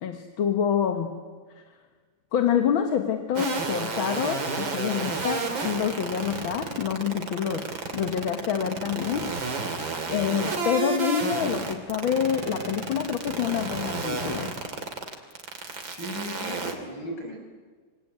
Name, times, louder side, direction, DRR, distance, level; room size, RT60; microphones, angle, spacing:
voice 1, 0.0-1.2 1.6-1.7 2.3-9.3 10.1-14.5, left 8 dB, 85° left, 6 dB, 2.2 m, -27 dB
sound 1, 3.4-16.7, right 4 dB, 75° right, 3.5 m, -30 dB
voice 2, 15.9-17.4, equal, 60° left, 2 dB, 6.4 m, -36 dB
26.0 x 24.0 x 9.5 m, 1.5 s
omnidirectional pair, 2.1 m